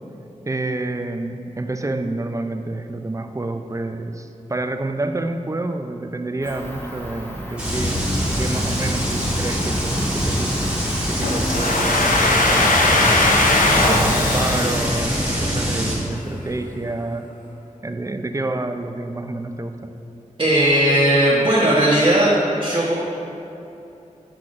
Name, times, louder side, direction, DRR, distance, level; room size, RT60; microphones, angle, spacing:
voice 1, 0.5-10.7 11.1-17.3 17.8-19.9, right 2 dB, 25° right, 6 dB, 0.4 m, -28 dB
Cricket, 6.4-14.4, equal, 15° left, 0.9 m, -33 dB
sound 1, 7.6-16.0, equal, 10° right, 1.5 m, -24 dB
Domestic sounds home sounds, 11.2-16.0, left 2 dB, 85° left, 0.6 m, -20 dB
voice 2, 20.4-22.3 22.6-22.9, right 1 dB, 40° right, -8 dB, 1.0 m, -17 dB
7.4 x 5.9 x 2.5 m, 2.9 s
wide cardioid pair, 50°, 13 cm